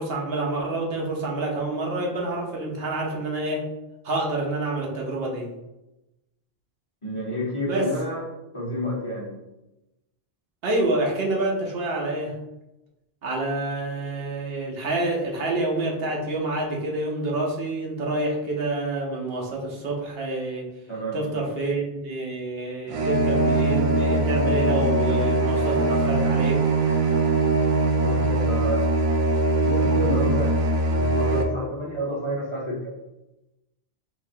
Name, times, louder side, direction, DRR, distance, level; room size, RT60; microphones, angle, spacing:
voice 1, 0.0-3.6 4.0-5.5 7.7-7.9 10.6-12.4 13.2-20.7 21.1-26.7, right 2 dB, 75° right, -1 dB, 1.0 m, -27 dB
voice 2, 7.0-8.2 8.5-9.4 20.9-21.4 26.8-26.9 28.0-28.8 29.6-30.5 30.8-32.9, equal, 30° left, -5 dB, 0.9 m, -29 dB
sound 1, 22.9-31.4, right 2 dB, 55° right, 0.4 m, -22 dB
3.9 x 2.9 x 2.7 m, 0.95 s
omnidirectional pair, 1.1 m